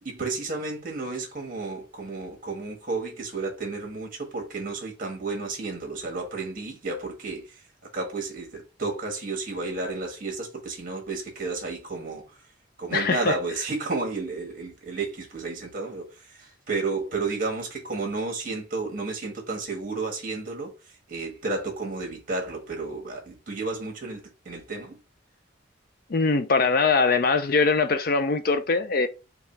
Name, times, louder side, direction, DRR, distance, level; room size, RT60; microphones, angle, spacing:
voice 1, 0.0-7.6 7.9-12.4 12.8-25.0, right 3 dB, 45° right, 1.5 m, -32 dB
voice 2, 12.9-13.4 26.1-29.1, left 4 dB, 50° left, 0.4 m, -22 dB
4.6 x 2.4 x 4.3 m
head